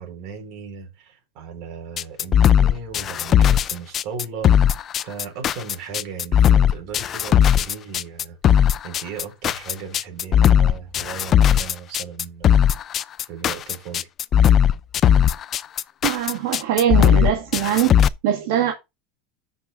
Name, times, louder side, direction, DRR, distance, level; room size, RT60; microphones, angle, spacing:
voice 1, 0.0-12.6 13.3-14.1 16.1-16.2, right 6 dB, 55° right, 4.6 m, -37 dB
sound 1, 2.0-18.1, left 9 dB, 30° left, 0.4 m, -17 dB
voice 2, 16.0-17.9 18.2-18.7, right 11 dB, 70° right, 1.9 m, -21 dB
14.0 x 6.1 x 2.6 m
supercardioid pair, 140°, 0 cm